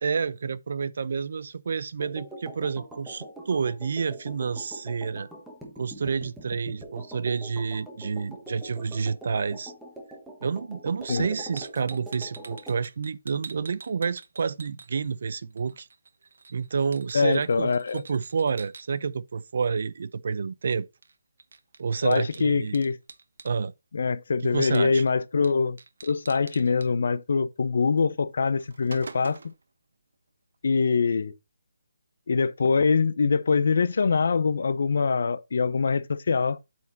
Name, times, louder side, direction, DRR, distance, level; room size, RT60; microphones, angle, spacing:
voice 1, 0.0-5.3 5.8-9.7 10.4-15.9 16.5-20.9 21.8-22.8 23.4-23.7 24.5-25.0, right 5 dB, 45° right, 0.5 m, -29 dB
sound 1, 2.0-12.8, right 1 dB, ahead, 1.2 m, -43 dB
sound 2, 11.6-15.3 15.6-18.8 21.0-21.1 21.4-23.5 24.7-25.1 25.4-25.5 25.8-26.9 28.0-28.1 28.5-29.6, right 4 dB, 65° right, 1.0 m, -46 dB
voice 2, 17.1-18.0 22.0-23.0 23.9-29.5 30.6-31.3 32.3-36.6, left 5 dB, 50° left, 0.7 m, -24 dB
8.4 x 4.5 x 4.0 m
hypercardioid pair, 175°, 0 cm